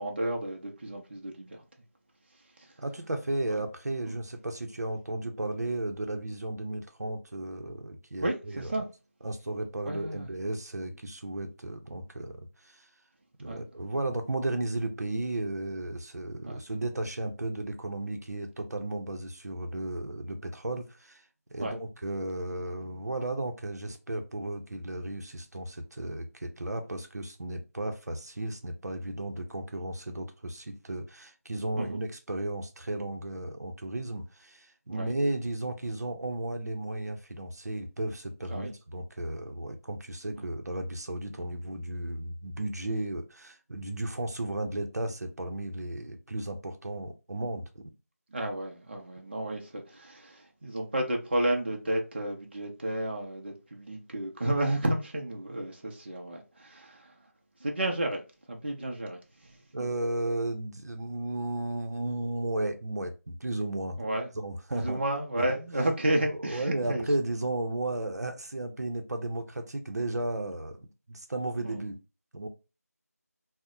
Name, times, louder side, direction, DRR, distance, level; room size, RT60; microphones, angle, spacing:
voice 1, 0.0-1.6 3.5-3.6 8.2-8.9 9.8-10.3 13.4-13.6 16.4-16.6 21.6-21.7 31.8-32.0 34.9-35.1 38.5-38.7 40.4-40.5 48.3-57.1 57.6-58.2 58.5-59.9 64.0-64.3 64.7-67.1 71.6-71.8, right 1 dB, 40° right, 0.6 m, -32 dB
voice 2, 2.8-8.7 9.2-12.9 13.4-21.2 21.5-47.9 59.7-64.0 64.4-65.0 66.5-72.0 72.3-72.5, right 1 dB, 80° right, 0.6 m, -34 dB
2.7 x 2.1 x 3.7 m
figure-of-eight pair, 170°, 9 cm